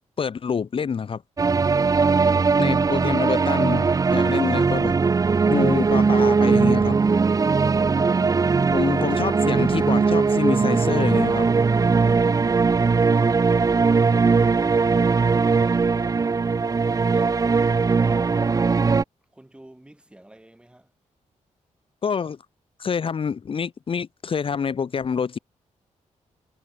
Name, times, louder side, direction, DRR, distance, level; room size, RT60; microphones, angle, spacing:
voice 1, 0.2-1.2 2.6-4.9 5.4-7.0 8.7-11.5 22.0-22.4 22.8-25.4, left 6 dB, 45° left, 1.1 m, -26 dB
sound 1, 1.4-19.0, right 4 dB, 25° right, 0.5 m, -20 dB
voice 2, 19.3-20.9, right 1 dB, 10° right, 5.6 m, -49 dB
cardioid pair, 115°, 13 cm